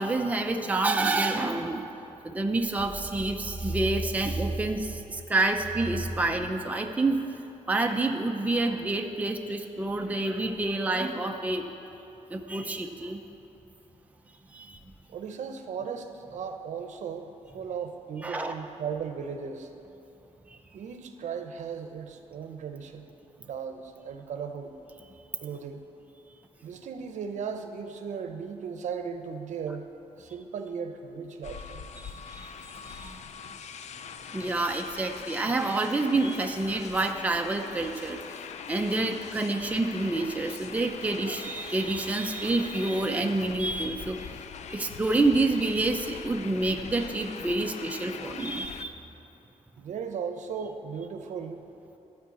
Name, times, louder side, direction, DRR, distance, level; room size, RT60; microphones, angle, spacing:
voice 1, 0.0-1.8 2.2-7.2 7.7-11.6 12.3-13.2 14.5-14.8 18.2-18.6 32.0-32.5 32.8-33.2 34.3-38.2 38.7-44.2 44.7-49.0, right 2 dB, 10° right, 3 dB, 0.6 m, -28 dB
voice 2, 15.1-19.7 20.7-23.1 23.4-24.7 25.4-25.8 26.6-29.9 30.2-31.8 49.8-51.7, right 6 dB, 75° right, 6 dB, 0.8 m, -36 dB
sound 1, 31.4-48.8, left 7 dB, 65° left, 0.4 m, -42 dB
13.0 x 4.7 x 8.3 m, 2.9 s
wide cardioid pair, 135°, 13 cm